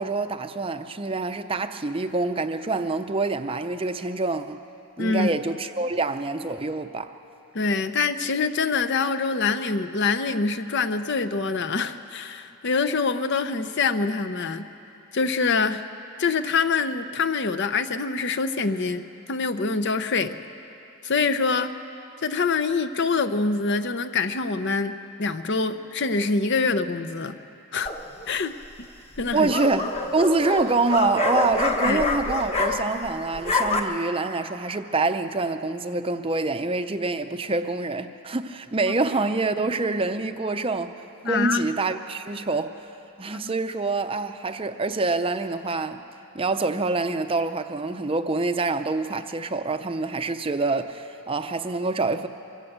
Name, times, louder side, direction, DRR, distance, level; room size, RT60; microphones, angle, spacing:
voice 1, 0.0-4.6 5.0-7.1 29.3-40.9 41.2-42.9 43.2-46.0 46.3-52.3, right 3 dB, 25° right, 0.6 m, -26 dB
voice 2, 5.0-5.3 7.5-14.7 15.1-15.8 16.2-20.4 21.0-21.8 22.2-27.4 27.7-27.9 28.3-28.5 29.2-29.5 31.8-32.0 38.8-38.9 41.2-41.6, left 4 dB, 50° left, 0.7 m, -25 dB
sound 1, 27.9-28.3 29.2-33.1 33.3-33.8, left 3 dB, 25° left, 1.2 m, -26 dB
24.5 x 15.0 x 8.0 m
head